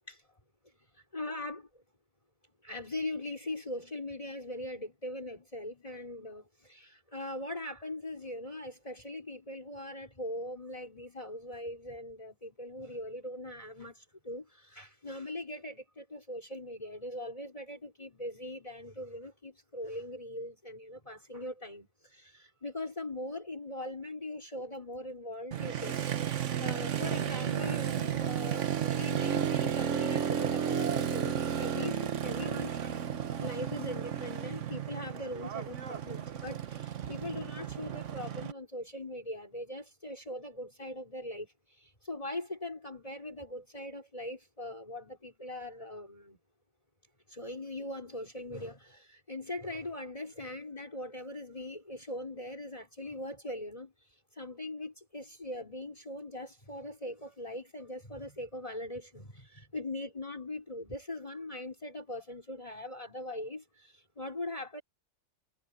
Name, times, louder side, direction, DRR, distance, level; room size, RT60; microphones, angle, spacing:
voice 1, 1.1-1.7 2.6-25.9 26.3-46.4 47.3-64.8, left 1 dB, 30° left, 4.9 m, -41 dB
Motorcycle, 25.5-38.5, right 8 dB, 80° right, 1.4 m, -33 dB
omnidirectional pair, 1.3 m